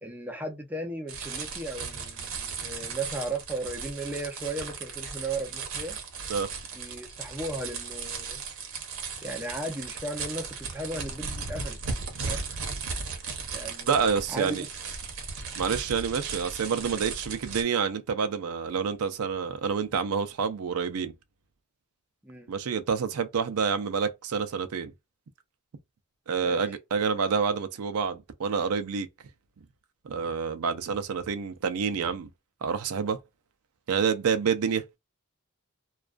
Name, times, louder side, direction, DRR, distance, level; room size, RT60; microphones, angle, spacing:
voice 1, 0.0-6.0 6.7-8.4 9.2-11.8 12.2-12.6 13.5-14.7 22.2-22.5 26.4-26.6, right 2 dB, 10° right, 0.4 m, -36 dB
sound 1, 1.1-17.6, right 5 dB, 65° right, 0.8 m, -36 dB
voice 2, 13.9-14.6 15.6-21.1 22.5-24.9 26.3-29.1 30.0-32.3 32.6-33.2 33.9-34.8, right 6 dB, 90° right, 0.5 m, -28 dB
2.4 x 2.2 x 2.3 m
head